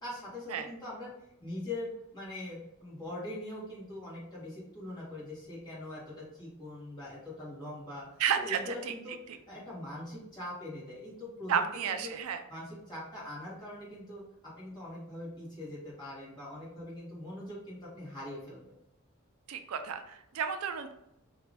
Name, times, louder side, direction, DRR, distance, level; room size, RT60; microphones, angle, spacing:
voice 1, 0.0-1.1 1.4-8.1 8.4-9.2 9.5-12.1 12.5-14.2 14.6-18.6, left 1 dB, 20° left, -8 dB, 1.4 m, -42 dB
voice 2, 8.2-8.9 11.5-12.4 19.5-20.9, right 7 dB, 80° right, 7 dB, 0.4 m, -32 dB
2.9 x 2.5 x 3.4 m, 0.84 s
head